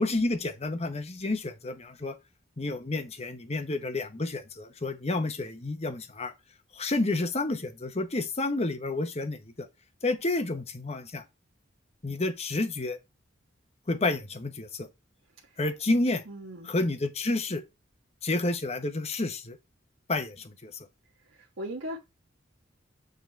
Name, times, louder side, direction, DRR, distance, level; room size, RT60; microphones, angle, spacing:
voice 1, 0.0-2.1 2.6-6.3 6.7-9.7 10.0-11.2 12.0-13.0 13.9-14.9 15.6-16.2 16.6-17.6 18.2-19.6 20.1-20.7, left 2 dB, 30° left, 0.9 m, -30 dB
voice 2, 16.3-16.7 21.3-22.0, equal, 80° right, 1.4 m, -38 dB
7.3 x 3.9 x 4.5 m
head